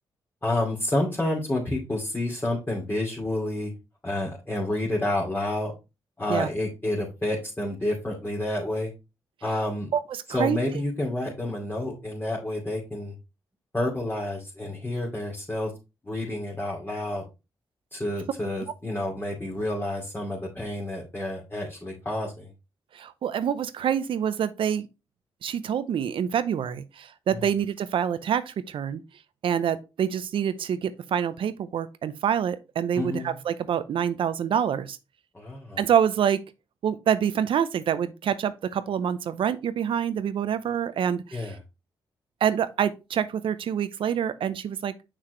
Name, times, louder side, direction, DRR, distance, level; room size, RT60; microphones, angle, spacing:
voice 1, 0.4-3.7 4.0-5.7 6.2-8.9 9.4-9.9 10.3-13.1 13.7-15.7 16.0-17.2 17.9-22.5 27.3-27.5 32.9-33.4 35.3-35.8 41.3-41.6, left 1 dB, 20° left, 2.6 m, -29 dB
voice 2, 22.9-24.9 25.4-29.0 29.4-35.0 35.8-36.4 36.8-41.5 42.4-44.9, right 8 dB, 75° right, 0.6 m, -26 dB
6.4 x 5.9 x 3.1 m
cardioid pair, 65°, 9 cm